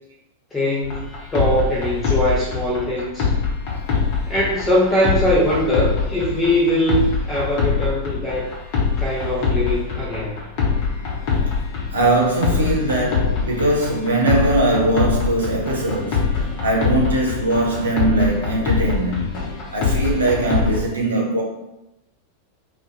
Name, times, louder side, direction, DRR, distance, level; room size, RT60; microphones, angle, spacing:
voice 1, 0.5-3.3 4.3-8.5 9.0-10.4, equal, 15° left, 0.7 m, -21 dB
sound 1, 0.8-20.8, left 5 dB, 45° left, 0.9 m, -24 dB
voice 2, 11.9-19.5 19.7-21.4, right 2 dB, 70° right, 0.8 m, -20 dB
2.6 x 2.3 x 3.8 m
figure-of-eight pair, 90°, 0 cm